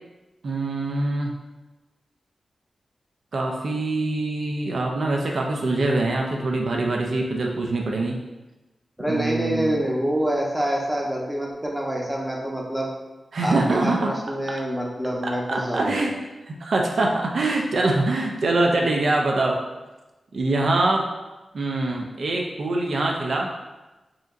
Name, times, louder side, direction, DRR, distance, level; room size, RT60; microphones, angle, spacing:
voice 1, 0.4-1.3 3.3-8.2 9.1-9.8 13.3-14.2 15.2-16.1 16.5-19.6 20.3-21.1 21.5-23.5, right 2 dB, 70° right, 0 dB, 0.4 m, -24 dB
voice 2, 9.0-12.9 13.4-16.0, right 1 dB, 5° right, -2 dB, 0.8 m, -26 dB
4.9 x 2.8 x 2.5 m, 1.1 s
wide cardioid pair, 85°, 0 cm